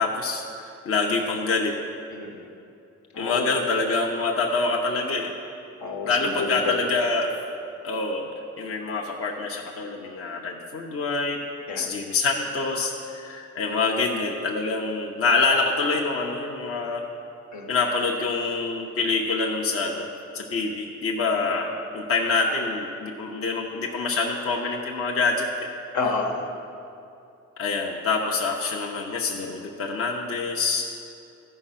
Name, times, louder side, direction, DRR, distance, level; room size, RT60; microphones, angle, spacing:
voice 1, 0.0-1.7 3.2-5.3 6.0-7.3 7.8-8.3 8.6-11.4 11.8-17.0 17.7-20.1 20.3-25.5 27.6-30.8, left 3 dB, 45° left, -1 dB, 0.9 m, -26 dB
voice 2, 2.1-2.5 3.1-3.5 5.8-6.9 11.7-11.9 17.5-17.7 21.4-21.5 25.9-26.5, left 4 dB, 70° left, 2 dB, 1.4 m, -29 dB
13.5 x 5.4 x 5.8 m, 2.6 s
cardioid pair, 90°, 30 cm